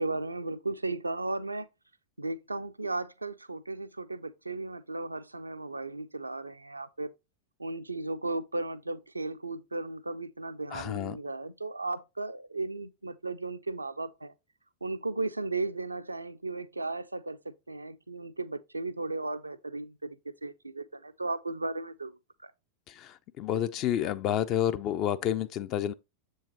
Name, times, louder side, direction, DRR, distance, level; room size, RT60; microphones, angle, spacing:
voice 1, 0.0-1.7 2.2-7.1 7.6-14.3 14.8-22.5, right 2 dB, 80° right, 0.4 m, -35 dB
voice 2, 10.7-11.2 22.9-25.9, left 10 dB, 35° left, 0.3 m, -30 dB
7.2 x 4.6 x 2.9 m
figure-of-eight pair, 90°, 0 cm